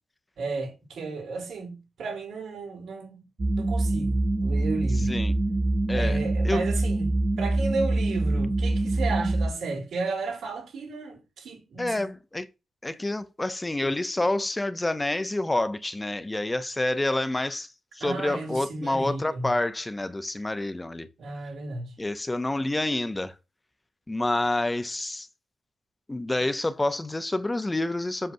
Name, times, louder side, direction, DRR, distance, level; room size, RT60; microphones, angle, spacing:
voice 1, 0.4-3.2 3.5-5.1 5.9-7.1 7.4-12.0 18.0-19.5 21.2-21.9, right 3 dB, 85° right, 4.9 m, -33 dB
sound 1, 3.4-9.5, right 2 dB, 30° right, 0.8 m, -25 dB
voice 2, 4.9-5.3 5.9-6.6 11.8-12.5 12.8-17.7 17.9-21.1 22.0-23.3 24.1-25.3 26.1-28.3, left 2 dB, 10° left, 0.5 m, -28 dB
7.7 x 6.5 x 2.6 m
wide cardioid pair, 170°, 0 cm